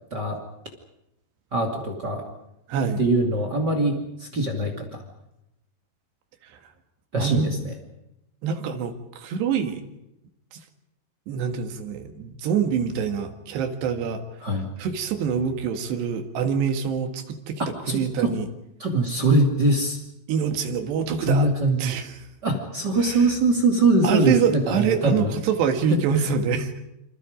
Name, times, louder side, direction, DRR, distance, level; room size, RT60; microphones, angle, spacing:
voice 1, 1.5-2.2 3.0-5.0 7.1-7.7 14.4-14.7 17.9-18.3 18.8-20.0 21.2-21.9 22.4-25.3, right 2 dB, 30° right, 4 dB, 2.5 m, -22 dB
voice 2, 2.7-3.1 6.5-6.6 7.2-7.5 8.4-9.8 10.5-10.6 11.3-14.2 14.8-17.6 17.9-18.5 20.3-21.5 21.8-22.3 23.0-23.2 24.0-26.8, right 7 dB, 70° right, 6 dB, 3.9 m, -25 dB
28.5 x 26.5 x 5.1 m, 0.87 s
omnidirectional pair, 5.1 m